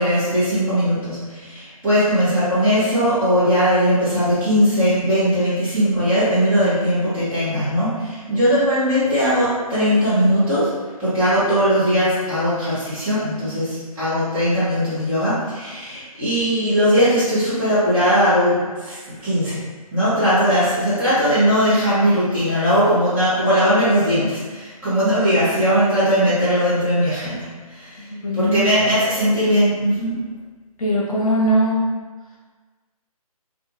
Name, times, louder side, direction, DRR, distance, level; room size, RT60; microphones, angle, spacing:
voice 1, 0.0-10.7 11.0-19.6 19.9-27.4 27.7-28.0 28.3-30.2, equal, 10° right, -14 dB, 0.9 m, -19 dB
voice 2, 28.0-28.7 30.8-31.9, equal, 65° left, -4 dB, 0.9 m, -20 dB
2.9 x 2.4 x 2.4 m, 1.4 s
hypercardioid pair, 155°, 19 cm